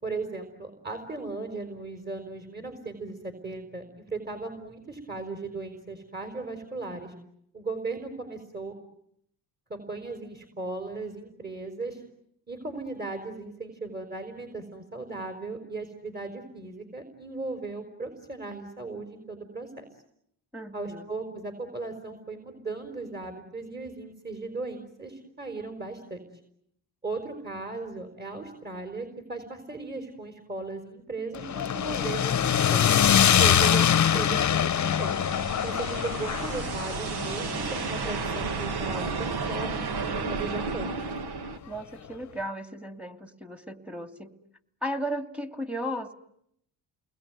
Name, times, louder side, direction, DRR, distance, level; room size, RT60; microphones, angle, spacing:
voice 1, 0.0-7.1 7.5-8.7 9.7-12.0 12.5-19.8 20.7-26.2 27.0-32.8 33.3-35.1 35.6-40.9, right 3 dB, 20° right, 5 dB, 4.9 m, -37 dB
voice 2, 20.5-21.1 41.7-44.3 44.8-46.1, equal, 5° right, 7 dB, 2.6 m, -35 dB
sound 1, 31.3-39.6, left 9 dB, 40° left, 1.1 m, -24 dB
sound 2, 34.0-41.6, right 4 dB, 60° right, 2.6 m, -33 dB
30.0 x 21.5 x 9.4 m, 0.75 s
cardioid pair, 90°, 43 cm